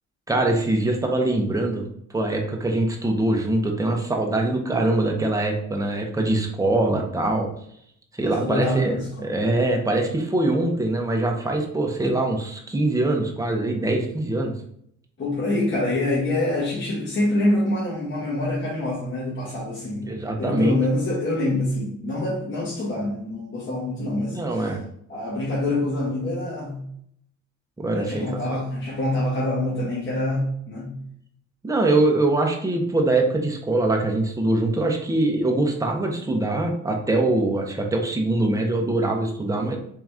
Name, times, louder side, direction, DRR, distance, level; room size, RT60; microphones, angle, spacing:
voice 1, 0.3-1.9 2.1-7.5 8.2-14.5 20.0-20.8 24.3-24.8 27.8-28.2 28.5-28.6 31.6-39.8, right 2 dB, 10° right, 1 dB, 0.8 m, -23 dB
voice 2, 8.2-9.3 15.2-20.1 20.4-24.6 25.1-26.8 27.9-31.0, left 1 dB, 40° left, -6 dB, 1.4 m, -25 dB
3.7 x 2.9 x 3.5 m, 0.70 s
cardioid pair, 90°, 30 cm